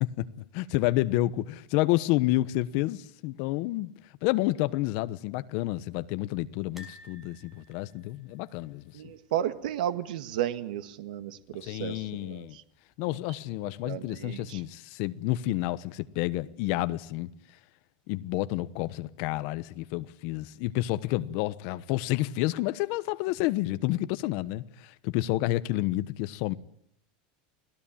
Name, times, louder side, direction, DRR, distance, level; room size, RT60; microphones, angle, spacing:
voice 1, 0.0-3.9 4.2-9.1 11.6-12.6 13.0-17.3 18.1-26.5, left 17 dB, 45° left, 1.1 m, -29 dB
sound 1, 6.8-9.8 10.1-10.3 10.5-10.6 11.9-12.4 12.9-13.0, left 2 dB, 5° right, 5.3 m, -54 dB
voice 2, 8.9-12.6 13.8-14.6, right 11 dB, 80° right, 1.8 m, -33 dB
29.0 x 18.5 x 8.9 m
supercardioid pair, 170°, 4 cm